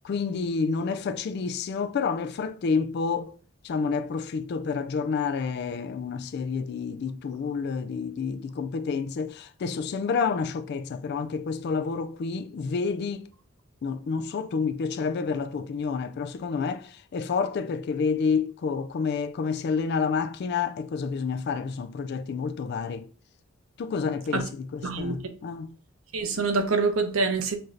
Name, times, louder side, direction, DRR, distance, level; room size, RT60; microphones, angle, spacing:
voice 1, 0.0-3.4 3.6-13.3 13.8-23.1 23.8-25.8, left 5 dB, 55° left, 0.3 m, -29 dB
voice 2, 24.8-25.2 26.1-27.6, right 4 dB, 85° right, 0.8 m, -25 dB
5.8 x 2.6 x 3.2 m
head